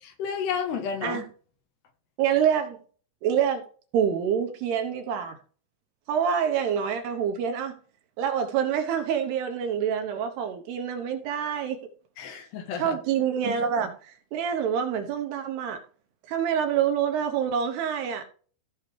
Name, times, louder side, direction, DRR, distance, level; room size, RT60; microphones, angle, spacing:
voice 1, 0.0-1.2 12.2-13.0, left 7 dB, 70° left, 3.0 m, -31 dB
voice 2, 2.2-2.8 3.2-3.7 3.9-5.4 6.1-7.8 8.2-11.8 12.8-15.8 16.3-18.2, right 8 dB, 75° right, 2.8 m, -26 dB
15.0 x 6.3 x 3.3 m
omnidirectional pair, 5.4 m